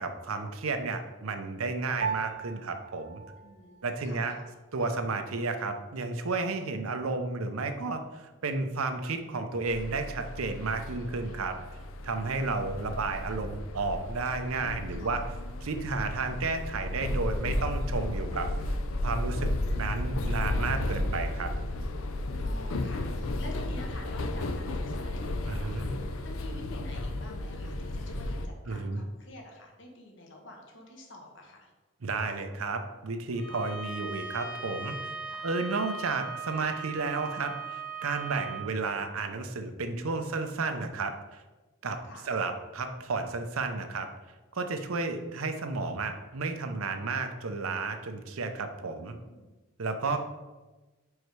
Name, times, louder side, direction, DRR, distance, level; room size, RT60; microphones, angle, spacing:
voice 1, 0.0-3.2 3.8-4.4 4.7-11.5 12.0-15.2 15.6-18.5 19.0-21.5 25.4-25.9 28.7-29.0 32.0-35.0 35.4-41.4 41.8-42.0 42.3-44.1 44.5-49.1 49.8-50.2, right 3 dB, 85° right, 7 dB, 0.7 m, -32 dB
Piano, 2.0-11.6, right 6 dB, 55° right, 0.4 m, -43 dB
voice 2, 3.4-4.5 12.2-12.7 14.9-15.1 18.1-18.4 22.4-31.7 35.3-35.5 39.9-40.3 42.0-42.3 48.8-49.5 50.0-50.2, left 1 dB, 60° left, 1 dB, 1.2 m, -49 dB
sound 1, 9.7-28.5, left 1 dB, 80° left, 0.6 m, -33 dB
Bowed string instrument, 33.3-38.7, right 5 dB, 35° left, 2.1 m, -39 dB
5.4 x 4.8 x 4.7 m, 1.2 s
head